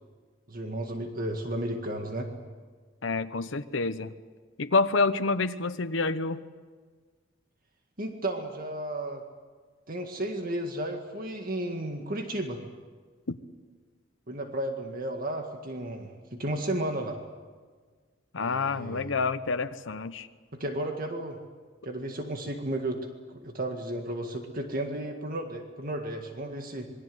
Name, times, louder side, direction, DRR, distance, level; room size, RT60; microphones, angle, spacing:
voice 1, 0.5-2.3 8.0-9.2 9.9-12.6 14.3-17.2 18.4-19.2 20.5-21.4 21.8-26.9, right 1 dB, 50° right, 4 dB, 2.0 m, -33 dB
voice 2, 3.0-4.1 4.6-6.4 13.3-13.4 18.3-20.3, left 3 dB, 85° left, 9 dB, 1.0 m, -28 dB
27.0 x 22.0 x 7.9 m, 1.5 s
head